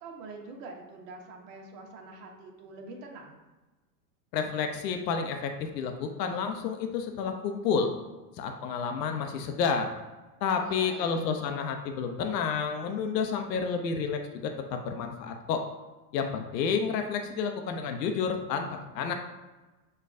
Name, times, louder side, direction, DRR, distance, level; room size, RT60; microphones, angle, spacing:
voice 1, 0.0-3.4 10.4-11.3, right 3 dB, 60° right, 1 dB, 1.0 m, -45 dB
voice 2, 4.3-7.9 8.4-9.9 10.4-15.6 16.1-18.7 18.9-19.1, left 6 dB, 85° left, 5 dB, 0.7 m, -30 dB
6.6 x 2.3 x 2.5 m, 1.2 s
hypercardioid pair, 110°, 48 cm